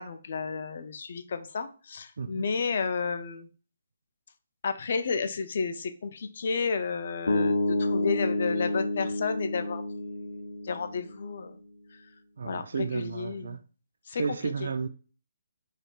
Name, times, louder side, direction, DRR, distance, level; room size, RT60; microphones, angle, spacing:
voice 1, 0.0-3.5 4.6-9.8 10.6-11.6 12.4-13.6 14.1-14.4, left 5 dB, 40° left, 0.3 m, -32 dB
voice 2, 2.2-2.5 12.4-13.6 14.2-14.9, right 5 dB, 55° right, 0.4 m, -32 dB
sound 1, 7.3-11.4, left 2 dB, 70° left, 0.7 m, -29 dB
3.3 x 2.3 x 4.3 m
hypercardioid pair, 180°, 0 cm